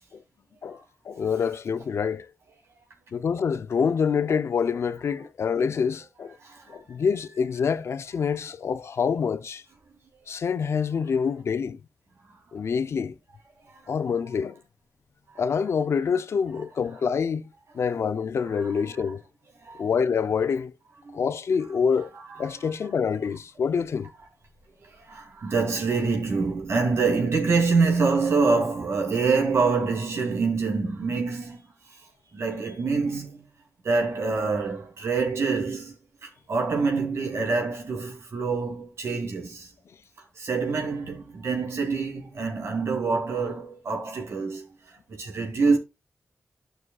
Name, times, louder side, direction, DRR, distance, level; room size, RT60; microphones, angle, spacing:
voice 1, 1.1-2.3 3.1-6.4 6.7-9.6 10.3-11.8 12.5-13.1 13.9-14.6 15.4-17.5 17.7-19.2 19.8-20.7 21.1-22.1 22.4-24.1, left 6 dB, 90° left, 0.5 m, -26 dB
voice 2, 18.5-19.0 19.6-19.8 21.1-21.2 22.3-22.5 25.1-31.6 32.3-33.4 33.8-35.9 36.2-39.7 40.4-44.7 45.1-45.8, right 4 dB, 85° right, 2.7 m, -26 dB
12.0 x 6.2 x 2.3 m
cardioid pair, 60°, 4 cm